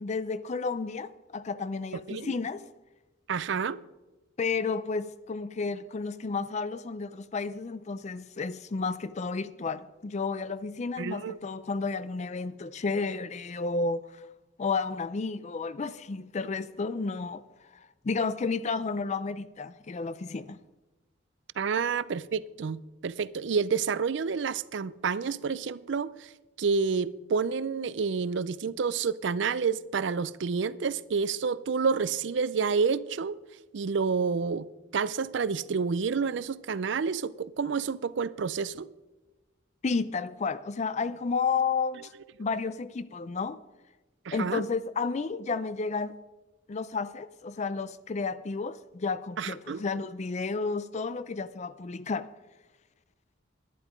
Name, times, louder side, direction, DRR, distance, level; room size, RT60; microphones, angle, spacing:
voice 1, 0.0-2.6 4.4-14.0 14.6-17.4 17.7-20.6 39.8-42.1 42.4-43.6 44.3-46.2 46.7-52.3, left 4 dB, 35° left, 0.4 m, -32 dB
voice 2, 3.3-3.8 11.0-11.4 21.6-26.3 26.6-33.4 33.7-34.7 34.9-38.9 44.3-44.6 49.4-49.8, right 5 dB, 65° right, 0.5 m, -29 dB
11.0 x 11.0 x 5.2 m
head